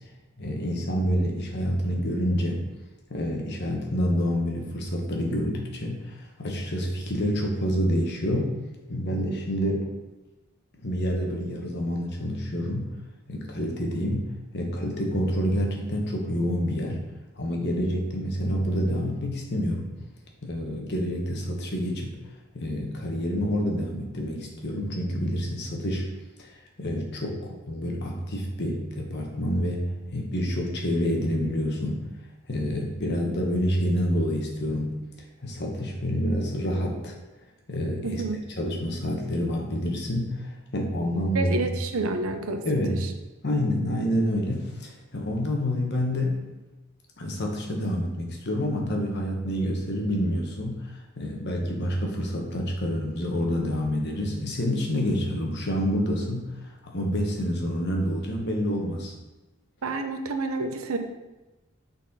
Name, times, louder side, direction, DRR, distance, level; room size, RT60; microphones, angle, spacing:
voice 1, 0.4-2.6 3.1-8.5 8.9-9.9 10.8-12.9 13.3-17.0 17.3-19.9 20.4-22.2 22.5-26.1 26.4-26.5 26.8-32.0 32.5-34.9 35.4-37.2 37.7-38.2 38.6-41.8 42.6-43.0 43.4-46.4 47.2-59.1, equal, 50° left, 0 dB, 1.1 m, -28 dB
voice 2, 38.0-38.4 41.3-43.0 59.8-61.0, right 3 dB, 75° right, 6 dB, 0.6 m, -29 dB
6.2 x 4.1 x 4.1 m, 1.1 s
head